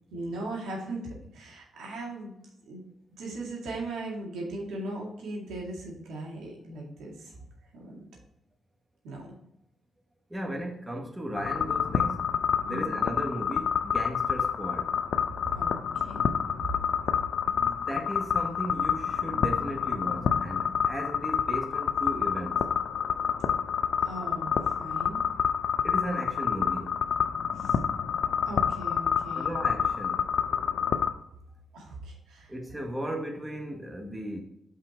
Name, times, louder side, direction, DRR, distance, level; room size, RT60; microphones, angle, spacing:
voice 1, 0.1-2.3 2.7-2.8 3.2-7.4 7.7-8.0 9.0-9.3 12.6-12.9 15.4-16.3 24.0-25.2 27.6-27.8 28.5-29.5 31.7-32.5, right 2 dB, 80° right, 2.0 m, -38 dB
voice 2, 10.3-12.2 12.6-14.9 17.4-22.6 25.8-27.0 29.3-30.3 32.5-34.4, right 1 dB, 15° right, 1.4 m, -36 dB
sound 1, 11.4-31.1, left 7 dB, 70° left, 0.5 m, -28 dB
5.6 x 5.0 x 4.5 m
supercardioid pair, 50°, 0 cm